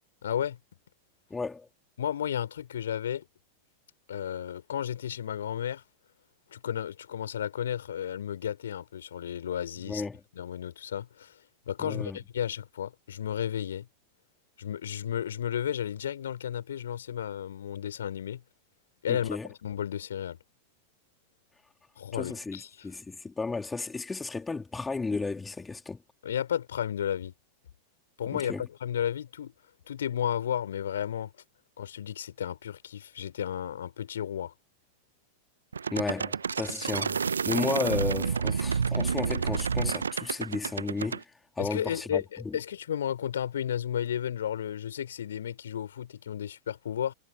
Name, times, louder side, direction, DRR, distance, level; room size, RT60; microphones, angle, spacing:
voice 1, 0.2-0.6 2.0-3.2 4.1-5.8 6.5-10.0 10.4-11.4 11.7-13.9 14.6-18.4 19.0-20.4 22.0-22.9 26.2-27.3 28.2-29.5 29.9-31.3 31.8-34.5 41.6-47.1, left 9 dB, 65° left, 4.0 m, -33 dB
voice 2, 1.3-1.7 9.9-10.2 11.8-12.2 19.1-19.5 22.1-26.0 28.3-28.6 35.9-41.3 41.6-42.6, left 4 dB, 10° left, 3.5 m, -33 dB
sound 1, 35.7-41.2, right 6 dB, 75° right, 1.2 m, -29 dB
figure-of-eight pair, 90°, 0 cm